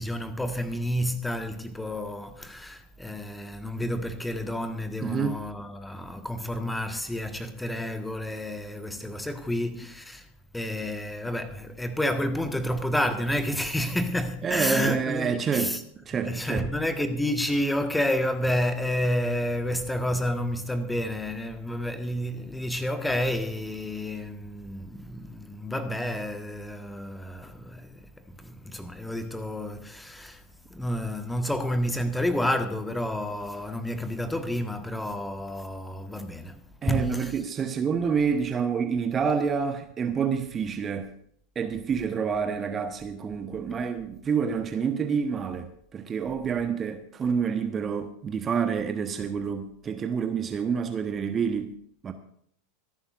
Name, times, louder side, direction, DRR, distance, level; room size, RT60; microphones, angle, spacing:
voice 1, 0.0-10.2 10.5-15.8 16.2-27.9 28.4-30.4 30.7-36.6 36.9-37.3, left 1 dB, 5° left, 1.5 m, -30 dB
voice 2, 5.0-5.4 14.4-16.7 36.8-41.1 41.5-51.7 52.0-52.1, right 6 dB, 25° right, 1.1 m, -28 dB
25.0 x 11.5 x 2.6 m
figure-of-eight pair, 85°, 0 cm